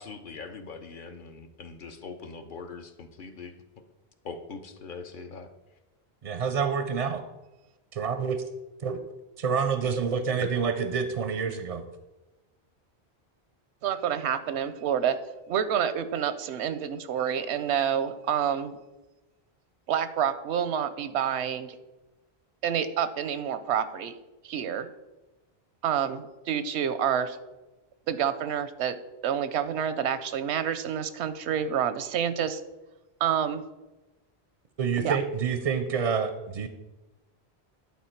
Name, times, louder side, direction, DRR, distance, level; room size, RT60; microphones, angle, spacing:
voice 1, 0.0-3.5 4.2-5.5, left 4 dB, 55° left, 7 dB, 0.8 m, -42 dB
voice 2, 6.2-7.2 7.9-8.4 8.8-9.0 9.4-11.8 34.8-36.7, right 6 dB, 50° right, 9 dB, 0.4 m, -27 dB
voice 3, 13.8-15.2 15.5-18.8 19.9-21.8 22.6-24.1 24.4-24.9 25.8-27.4 28.1-29.0 29.2-32.6 33.2-33.6 35.0-35.2, right 8 dB, 85° right, 12 dB, 0.9 m, -28 dB
10.5 x 4.3 x 4.4 m, 1.1 s
omnidirectional pair, 1.1 m